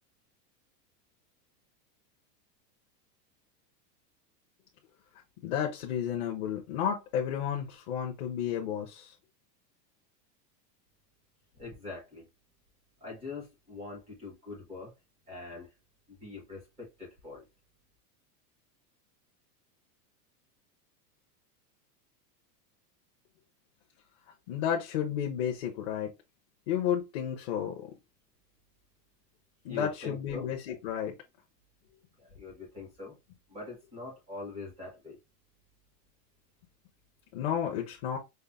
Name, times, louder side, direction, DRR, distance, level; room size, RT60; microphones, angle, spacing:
voice 1, 5.4-9.1 24.5-26.1 26.7-27.9 29.6-31.2 37.3-38.2, left 9 dB, 40° left, 0.8 m, -32 dB
voice 2, 11.6-12.3 13.0-14.9 15.3-15.7 16.1-17.4 29.7-30.4 32.3-33.2 33.5-35.2, left 3 dB, ahead, 0.4 m, -43 dB
5.5 x 2.1 x 3.5 m
supercardioid pair, 175°, 49 cm